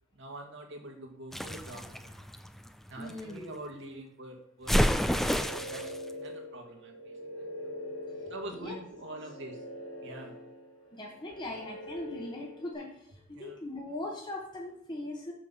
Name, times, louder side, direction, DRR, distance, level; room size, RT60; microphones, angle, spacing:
voice 1, 0.1-2.3 2.9-7.5 8.2-9.6 10.0-10.3 13.3-13.6, right 1 dB, 60° right, 2 dB, 1.7 m, -45 dB
sound 1, 1.3-3.2 4.7-6.0, equal, ahead, 0.3 m, -29 dB
voice 2, 3.0-3.5 8.5-8.8 10.9-15.3, left 1 dB, 20° left, -1 dB, 1.1 m, -40 dB
sound 2, 4.9-12.8, equal, 65° left, 2.6 m, -44 dB
6.5 x 6.0 x 5.6 m, 0.77 s
head